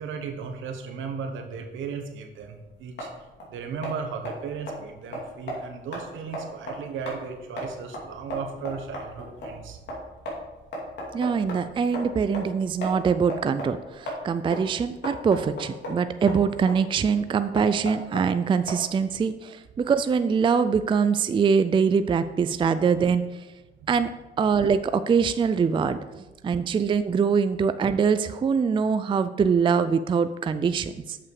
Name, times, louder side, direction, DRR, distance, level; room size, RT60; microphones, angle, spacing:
voice 1, 0.0-3.1 3.5-9.8 23.8-23.9, right 6 dB, 80° right, 4 dB, 1.2 m, -36 dB
sound 1, 2.4-19.2, equal, 60° left, 2.7 m, -37 dB
voice 2, 11.1-23.3 23.9-24.1 24.4-31.2, right 6 dB, 25° right, 11 dB, 0.3 m, -23 dB
7.1 x 5.7 x 4.7 m, 1.1 s
cardioid pair, 90°, 20 cm